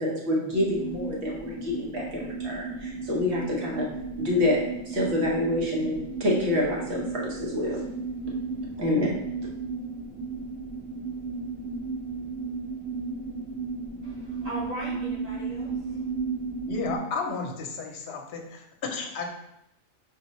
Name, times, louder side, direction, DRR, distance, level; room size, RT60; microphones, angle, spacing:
voice 1, 0.0-3.9 4.2-7.8 8.8-9.2, left 1 dB, 55° right, -3 dB, 1.3 m, -27 dB
sound 1, 0.5-17.0, right 4 dB, 5° left, 0.9 m, -34 dB
voice 2, 14.0-16.1, equal, 80° right, -8 dB, 2.3 m, -39 dB
voice 3, 16.7-18.7 18.9-19.3, left 4 dB, 55° left, 2 dB, 0.9 m, -33 dB
5.5 x 2.7 x 3.0 m, 0.82 s
omnidirectional pair, 1.4 m